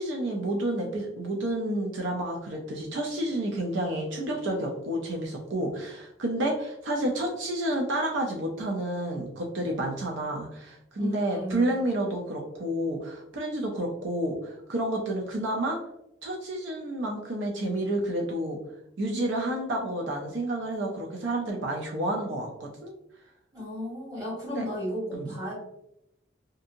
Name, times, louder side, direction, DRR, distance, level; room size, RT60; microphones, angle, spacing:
voice 1, 0.0-15.8 16.2-18.6 19.0-22.9 24.4-24.6 25.1-25.3, right 1 dB, 75° right, 0 dB, 0.5 m, -30 dB
voice 2, 11.0-11.6 23.5-25.5, equal, 20° right, -8 dB, 1.5 m, -34 dB
2.7 x 2.6 x 2.5 m, 0.81 s
head